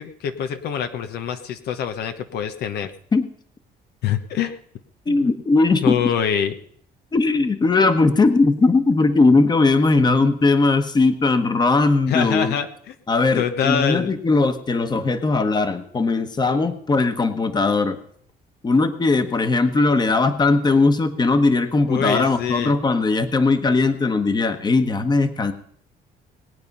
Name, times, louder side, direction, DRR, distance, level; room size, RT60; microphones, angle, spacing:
voice 1, 0.0-2.9 4.0-4.5 5.1-5.3 5.8-6.5 12.1-12.9 13.4-14.2 21.9-22.8, left 8 dB, 75° left, 8 dB, 1.0 m, -25 dB
voice 2, 5.1-6.0 7.1-12.5 13.1-18.0 18.6-25.5, left 3 dB, 25° left, 9 dB, 1.3 m, -19 dB
19.5 x 8.7 x 5.5 m, 0.64 s
cardioid pair, 110°, 17 cm